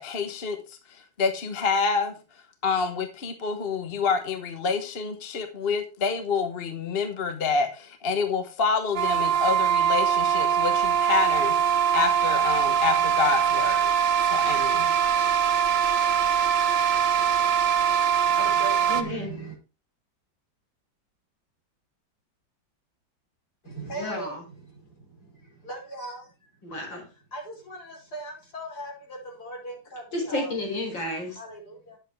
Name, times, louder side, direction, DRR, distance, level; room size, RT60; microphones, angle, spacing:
voice 1, 0.0-2.1 2.6-13.9 14.3-14.9, left 5 dB, 35° left, 6 dB, 1.3 m, -27 dB
sound 1, 9.0-19.0, right 8 dB, 70° right, 1.7 m, -22 dB
voice 2, 18.3-19.6 23.6-26.6 27.0-30.6 31.3-32.0, right 2 dB, 55° left, -1 dB, 5.5 m, -39 dB
voice 3, 18.9-19.4 24.0-24.4 26.6-27.0 30.1-31.4, left 1 dB, 70° left, 0 dB, 5.2 m, -31 dB
10.5 x 8.0 x 4.6 m, 0.29 s
omnidirectional pair, 2.1 m